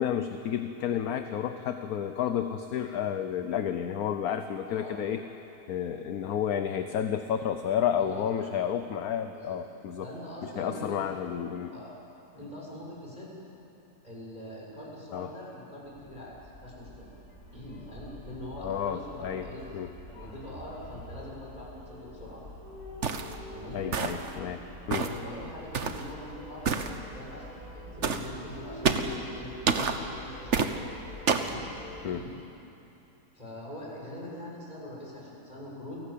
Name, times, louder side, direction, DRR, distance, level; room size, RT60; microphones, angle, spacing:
voice 1, 0.0-5.2 5.7-10.1 10.4-11.7 15.1-15.3 18.6-19.5 19.7-19.9 20.2-20.3 23.7-24.6 24.9-25.1 32.0-32.2, left 9 dB, 65° left, 8 dB, 1.3 m, -31 dB
voice 2, 8.0-8.5 9.3-9.6 10.0-10.9 11.7-11.9 12.3-13.4 14.0-17.1 17.5-19.6 20.1-22.4 23.5-23.9 24.9-30.8 31.4-31.7 32.0-32.4 33.3-36.0, left 1 dB, 25° left, -4 dB, 7.0 m, -43 dB
sound 1, 15.8-32.1, equal, 65° right, 7.6 m, -46 dB
sound 2, 23.0-23.3 23.9-24.3 24.9-25.2 25.7-26.0 26.6-26.9 28.0-28.3 28.8-29.1 29.7-30.0 30.5-30.7 31.3-31.5, right 5 dB, 50° right, 1.4 m, -27 dB
29.0 x 19.0 x 8.5 m, 2.9 s
omnidirectional pair, 1.7 m